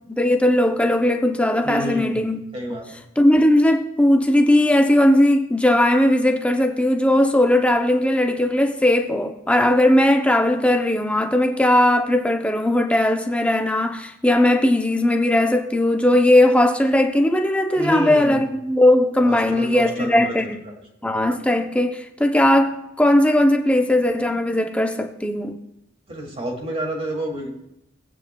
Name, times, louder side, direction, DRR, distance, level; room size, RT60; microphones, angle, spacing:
voice 1, 0.1-2.4 3.2-20.6 21.0-25.6, left 1 dB, 5° left, 0.5 m, -18 dB
voice 2, 1.6-2.3 2.5-3.0 17.8-18.5 19.2-20.7 26.1-27.5, right 1 dB, 30° right, 2.1 m, -29 dB
18.5 x 8.9 x 2.2 m
head